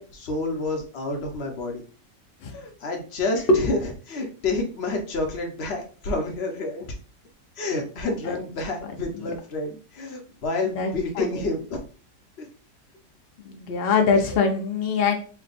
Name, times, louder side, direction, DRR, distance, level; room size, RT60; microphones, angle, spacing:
voice 1, 0.0-1.8 2.5-6.9 7.6-11.8 12.4-12.5 14.3-14.4, left 2 dB, 50° left, 2 dB, 0.8 m, -29 dB
voice 2, 2.4-2.7 3.5-3.6 8.3-8.4 10.7-10.9 11.2-11.3 13.4-15.2, left 4 dB, 90° left, 3 dB, 0.5 m, -22 dB
3.4 x 2.2 x 3.9 m, 0.39 s
omnidirectional pair, 1.8 m